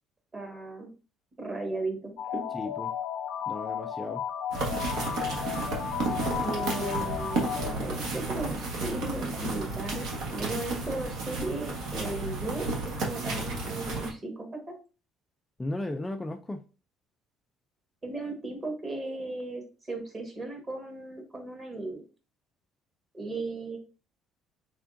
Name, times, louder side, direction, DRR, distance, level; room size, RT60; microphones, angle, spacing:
voice 1, 0.3-0.9 1.4-2.4 6.4-14.7 18.0-22.0 23.1-23.8, right 2 dB, 25° right, 3 dB, 1.3 m, -36 dB
sound 1, 2.2-7.7, left 9 dB, 70° left, 0.5 m, -34 dB
voice 2, 2.5-2.9 3.5-4.2 15.6-16.6, left 2 dB, 15° left, 4 dB, 0.3 m, -35 dB
sound 2, 4.5-14.1, right 2 dB, 75° right, 1.2 m, -32 dB
3.6 x 3.5 x 2.5 m, 0.33 s
cardioid pair, 115°, 0 cm